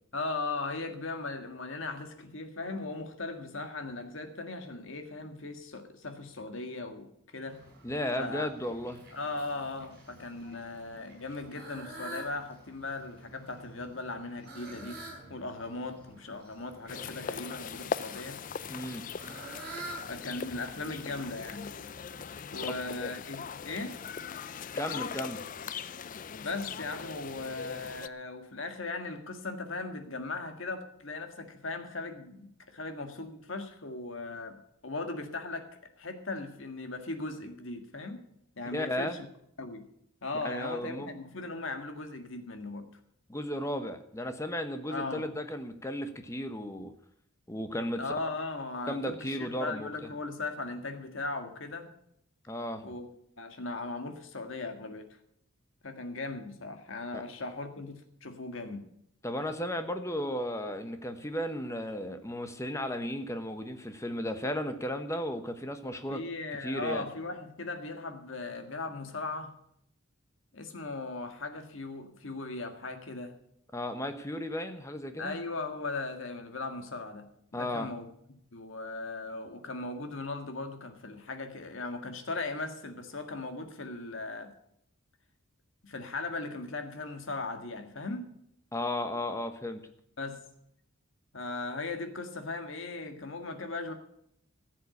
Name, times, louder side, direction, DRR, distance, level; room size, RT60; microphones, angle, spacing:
voice 1, 0.1-7.6 8.2-8.5 9.1-15.0 15.3-18.4 20.1-21.7 22.5-24.0 26.4-34.6 34.8-35.7 36.0-38.2 38.6-39.3 39.6-39.8 40.2-42.8 44.9-45.3 48.0-51.9 52.8-53.1 53.4-55.1 55.8-58.9 66.1-69.5 70.5-73.3 75.2-77.3 77.5-78.1 78.5-84.5 85.8-88.3 90.2-90.4 91.3-93.9, left 3 dB, 60° left, 6 dB, 1.8 m, -38 dB
Fowl, 7.5-22.9, right 2 dB, 45° right, 7.0 m, -49 dB
voice 2, 7.8-9.0 18.7-19.0 22.7-22.8 24.7-25.4 38.7-39.2 40.4-41.1 43.3-46.9 47.5-48.0 48.9-49.9 52.5-52.8 57.1-57.2 59.2-66.2 66.6-67.1 73.7-75.4 77.5-77.9 88.7-89.8, left 1 dB, 15° left, 8 dB, 1.0 m, -34 dB
sound 1, 16.9-28.1, left 6 dB, 40° left, 0.4 m, -40 dB
15.0 x 7.5 x 8.4 m, 0.75 s
head